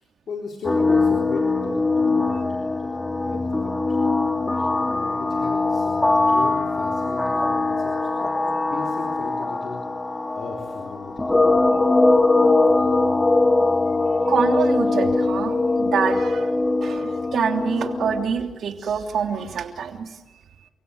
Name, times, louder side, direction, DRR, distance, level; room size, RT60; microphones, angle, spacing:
voice 1, 0.3-2.9 3.2-4.0 4.7-9.8 10.3-11.3, left 4 dB, 65° left, 2 dB, 3.9 m, -36 dB
sound 1, 0.6-18.2, left 2 dB, 20° left, 2.0 m, -21 dB
voice 2, 14.3-16.5 16.8-20.1, right 6 dB, 75° right, 4 dB, 3.1 m, -26 dB
29.5 x 17.0 x 9.7 m, 1.1 s
cardioid pair, 75°, 0 cm